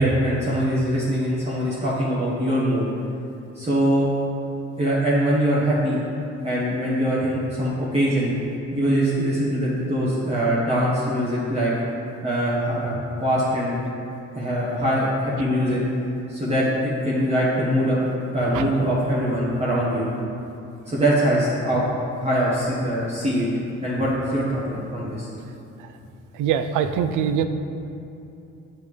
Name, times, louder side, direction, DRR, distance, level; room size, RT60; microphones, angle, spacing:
voice 1, 0.0-2.9 3.5-4.1 4.8-6.0 6.4-11.7 12.2-13.8 14.3-15.8 16.3-18.0 18.3-20.1 20.9-21.9 22.2-23.5 23.8-25.3, equal, 20° right, -8 dB, 1.3 m, -22 dB
voice 2, 26.4-27.5, right 8 dB, 85° right, 9 dB, 0.5 m, -22 dB
8.7 x 5.4 x 3.2 m, 2.8 s
cardioid pair, 90°, 30 cm